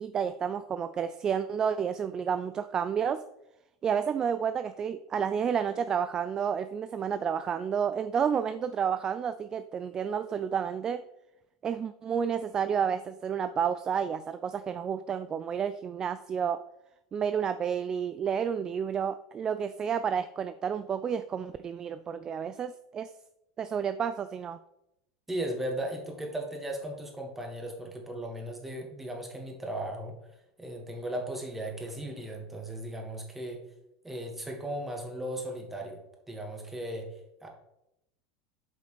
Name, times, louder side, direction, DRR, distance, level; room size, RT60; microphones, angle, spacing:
voice 1, 0.0-3.2 3.8-11.0 11.6-16.6 17.1-23.1 23.6-24.6, right 7 dB, 30° right, 12 dB, 0.3 m, -30 dB
voice 2, 25.3-30.1 30.6-33.6 34.0-36.0 36.3-37.5, right 1 dB, 10° right, 1 dB, 1.9 m, -36 dB
8.1 x 5.2 x 3.3 m, 0.84 s
hypercardioid pair, 95°, 2 cm